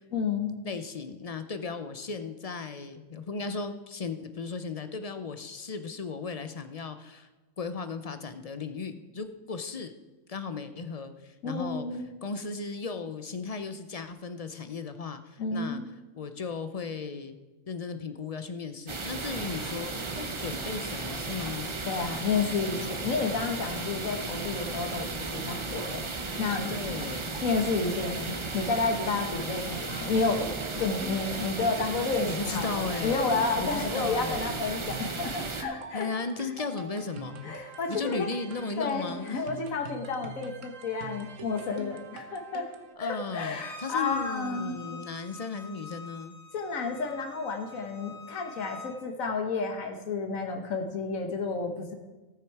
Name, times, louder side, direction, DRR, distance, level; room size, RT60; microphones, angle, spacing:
voice 1, 0.1-0.6 11.4-12.2 15.4-15.9 21.9-27.1 27.4-36.1 37.4-38.3 38.8-42.6 43.0-45.0 46.5-52.0, left 4 dB, 80° left, 4 dB, 1.7 m, -31 dB
voice 2, 0.6-7.3 7.6-9.9 10.3-11.9 12.2-15.8 16.2-17.4 17.7-21.7 26.7-27.4 32.2-33.3 33.6-34.6 35.9-37.6 37.9-39.4 43.0-46.4, left 4 dB, 40° left, 9 dB, 0.5 m, -36 dB
sound 1, 18.9-35.6, right 3 dB, 30° right, 0.7 m, -35 dB
sound 2, 30.6-42.9, right 4 dB, 70° right, 1.4 m, -45 dB
Bowed string instrument, 43.4-48.9, left 3 dB, 60° left, 1.8 m, -46 dB
18.0 x 6.4 x 4.7 m, 1.2 s
omnidirectional pair, 1.4 m